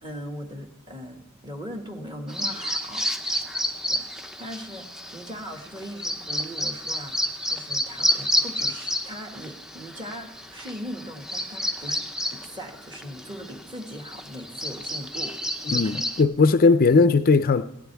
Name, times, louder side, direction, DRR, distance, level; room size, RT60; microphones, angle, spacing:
voice 1, 0.0-3.6 3.9-4.1 4.4-4.9 5.1-15.4 15.7-16.1, equal, 25° right, 1.9 m, -39 dB
Bird vocalization bird call bird song, 2.3-16.2, equal, 5° right, 0.6 m, -30 dB
voice 2, 15.7-17.6, left 4 dB, 45° left, 0.5 m, -18 dB
20.0 x 16.5 x 3.5 m
head